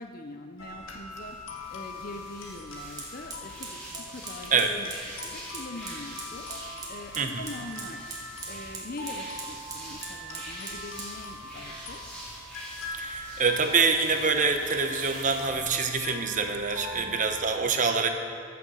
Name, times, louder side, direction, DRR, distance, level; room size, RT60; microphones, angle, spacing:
voice 1, 0.0-1.4 1.7-3.8 4.1-4.9 5.2-6.5 6.9-8.0 8.5-12.0 16.9-17.3, left 2 dB, 45° left, 5 dB, 0.7 m, -43 dB
sound 1, 0.6-17.5, left 1 dB, 65° left, 1.8 m, -42 dB
sound 2, 1.2-15.4, equal, 5° left, 3.8 m, -45 dB
Fire, 3.0-17.0, right 3 dB, 20° right, 2.0 m, -45 dB
voice 2, 12.9-18.1, right 5 dB, 35° right, 6 dB, 0.9 m, -25 dB
15.0 x 7.0 x 6.3 m, 2.3 s
head